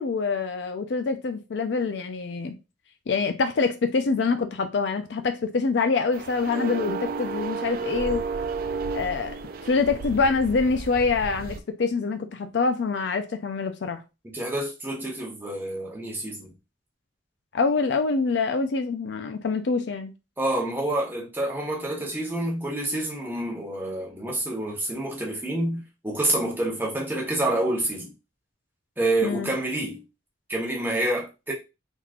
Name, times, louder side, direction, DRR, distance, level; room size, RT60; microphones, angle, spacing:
voice 1, 0.0-2.5 3.1-8.2 8.9-9.3 9.7-14.0 17.5-20.1 29.2-29.5, left 4 dB, 75° left, 0.4 m, -25 dB
sound 1, 6.1-11.6, right 4 dB, 50° right, 0.3 m, -32 dB
voice 2, 14.3-16.5 20.4-28.1 29.0-30.0 30.5-31.5, right 1 dB, 10° right, 0.9 m, -28 dB
3.6 x 3.0 x 2.4 m
head